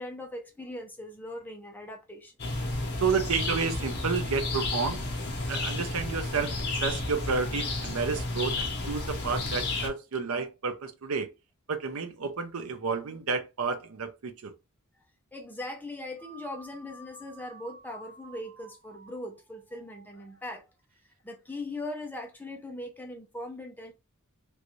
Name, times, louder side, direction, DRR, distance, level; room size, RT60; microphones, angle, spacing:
voice 1, 0.0-2.3 15.3-20.6 21.2-23.9, left 1 dB, 10° left, 0.6 m, -40 dB
sound 1, 2.4-9.9, left 2 dB, 50° left, 0.9 m, -32 dB
voice 2, 3.0-5.1 5.5-6.5 6.8-11.3 11.7-14.5, right 5 dB, 70° right, 0.6 m, -31 dB
sound 2, 16.2-20.7, right 2 dB, 40° right, 1.1 m, -52 dB
3.2 x 2.6 x 3.0 m
head